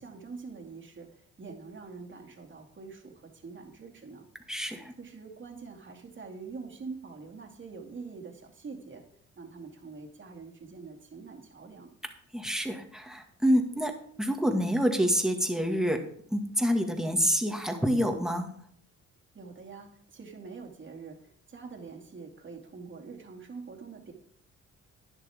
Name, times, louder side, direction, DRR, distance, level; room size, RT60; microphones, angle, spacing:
voice 1, 0.0-4.3 5.0-9.0 9.4-11.9 19.3-24.1, right 4 dB, 40° right, 2 dB, 2.4 m, -45 dB
voice 2, 4.5-4.9 12.3-13.9 14.2-16.0 16.3-18.5, equal, ahead, 3 dB, 1.9 m, -27 dB
11.5 x 10.5 x 3.6 m, 0.64 s
cardioid pair, 90°, 30 cm